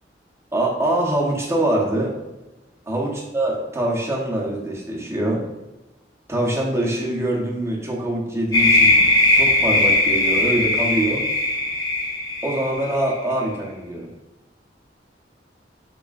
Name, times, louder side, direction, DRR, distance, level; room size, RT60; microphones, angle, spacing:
voice 1, 0.5-2.1 2.9-5.4 6.3-9.0 9.3-11.3 12.4-14.1, right 1 dB, 15° right, -3 dB, 1.0 m, -24 dB
sound 1, 8.5-13.1, left 2 dB, 20° left, 0.9 m, -19 dB
7.1 x 3.1 x 2.4 m, 1.0 s
head